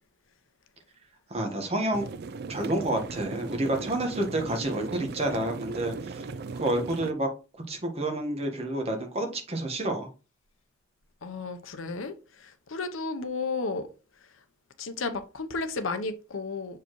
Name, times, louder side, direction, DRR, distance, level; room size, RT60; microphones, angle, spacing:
voice 1, 1.3-2.1 2.5-6.2 6.6-7.3 7.7-10.1, right 1 dB, 30° right, 1.3 m, -29 dB
sound 1, 1.9-7.1, right 4 dB, 55° right, 0.4 m, -38 dB
voice 2, 11.2-13.9 14.8-16.8, left 3 dB, 90° left, 0.8 m, -33 dB
6.8 x 4.8 x 3.1 m
head